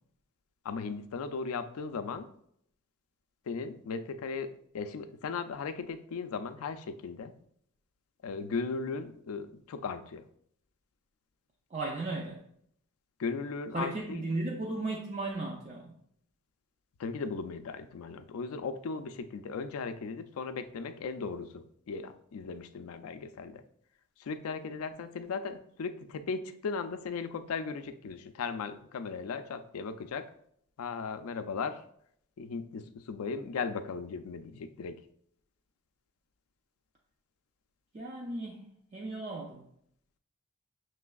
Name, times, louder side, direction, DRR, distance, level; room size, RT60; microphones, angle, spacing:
voice 1, 0.6-2.3 3.5-7.3 8.2-10.2 13.2-14.2 17.0-23.6 24.2-30.3 30.8-31.8 32.4-35.0, left 5 dB, 85° left, 10 dB, 0.4 m, -37 dB
voice 2, 11.7-12.4 13.7-15.9 37.9-38.6 38.9-39.6, right 2 dB, 30° right, -1 dB, 0.4 m, -35 dB
5.9 x 3.2 x 2.3 m, 0.69 s
head